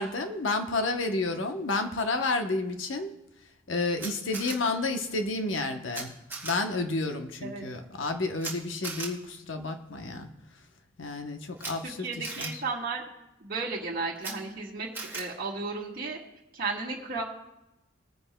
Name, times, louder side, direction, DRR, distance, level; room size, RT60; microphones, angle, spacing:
voice 1, 0.0-3.1 3.7-6.1 6.4-10.3 11.0-12.6, left 3 dB, 80° left, 6 dB, 0.9 m, -30 dB
Camera, 4.0-4.5 5.9-6.0 6.3-6.5 8.4-8.5 8.8-9.1 11.6-11.7 12.2-12.5 14.2-14.3 14.9-15.2, right 3 dB, 10° right, 2.1 m, -36 dB
voice 2, 11.8-13.0 13.4-16.2 16.5-17.2, right 3 dB, 50° right, -4 dB, 1.7 m, -34 dB
21.5 x 9.9 x 2.2 m, 0.91 s
head